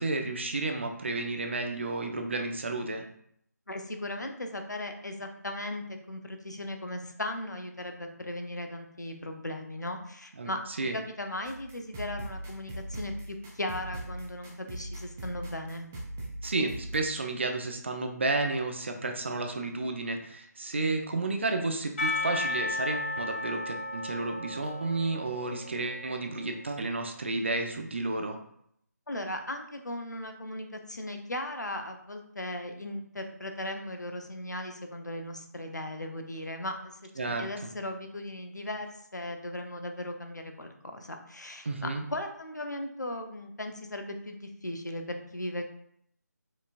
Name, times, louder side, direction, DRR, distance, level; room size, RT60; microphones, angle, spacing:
voice 1, 0.0-3.1 10.4-10.5 10.8-11.0 16.4-28.4 37.2-37.5 41.6-42.0, right 2 dB, 40° right, 4 dB, 0.6 m, -31 dB
voice 2, 3.7-10.6 10.9-15.9 29.1-37.1 37.4-45.7, left 1 dB, 75° left, 5 dB, 0.8 m, -37 dB
sound 1, 11.4-17.0, right 1 dB, 5° right, 0.3 m, -40 dB
Percussion / Church bell, 22.0-26.8, left 2 dB, 40° left, 1.8 m, -35 dB
5.3 x 4.0 x 2.5 m, 0.68 s
figure-of-eight pair, 155°, 10 cm